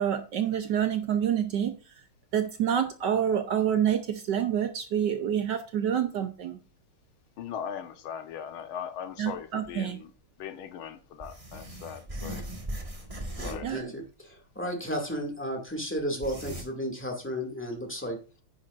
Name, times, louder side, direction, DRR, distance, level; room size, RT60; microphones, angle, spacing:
voice 1, 0.0-1.8 2.3-6.6 9.2-10.0 13.6-13.9, right 9 dB, 65° right, 1.3 m, -27 dB
voice 2, 7.4-10.0 10.4-12.4 13.4-13.7, left 8 dB, 80° left, 1.8 m, -39 dB
sound 1, 9.3-9.4 9.6-9.7 11.2-13.7 14.0-14.1 15.4-15.5 16.0-16.6, right 1 dB, 20° right, 1.3 m, -38 dB
voice 3, 13.4-18.2, equal, 5° left, 2.1 m, -33 dB
10.0 x 9.6 x 2.5 m
omnidirectional pair, 2.3 m